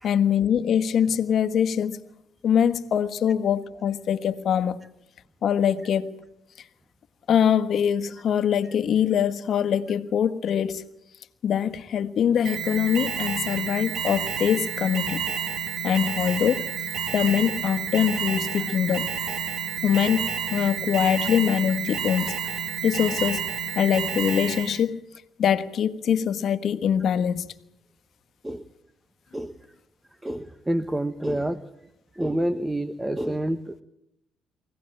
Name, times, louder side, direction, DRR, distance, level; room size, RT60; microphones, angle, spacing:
voice 1, 0.0-2.0 2.4-4.8 5.4-6.2 7.3-10.9 11.4-15.2 15.8-16.6 17.1-19.2 19.8-22.4 22.8-23.5 23.7-25.0 25.4-27.5, left 8 dB, 60° left, 1.4 m, -23 dB
Alarm, 12.4-24.8, right 7 dB, 65° right, 2.4 m, -30 dB
voice 2, 30.2-31.6 32.1-33.8, right 1 dB, 10° right, 1.1 m, -28 dB
24.0 x 17.5 x 9.0 m
supercardioid pair, 75°, 0 cm